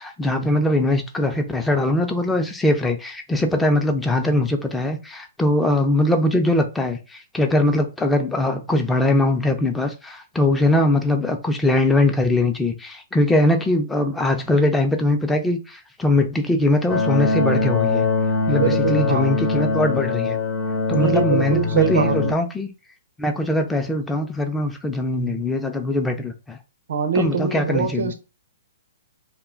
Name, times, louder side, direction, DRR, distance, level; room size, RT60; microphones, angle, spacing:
voice 1, 0.0-18.1 18.5-20.4 20.9-22.7 23.2-26.6 27.2-28.1, left 1 dB, 5° left, 0.4 m, -21 dB
sound 1, 16.9-22.3, left 4 dB, 40° left, 0.8 m, -22 dB
voice 2, 18.5-19.3 20.9-22.3 26.9-28.1, right 6 dB, 70° right, 0.5 m, -23 dB
2.2 x 2.1 x 3.7 m
hypercardioid pair, 130°, 0 cm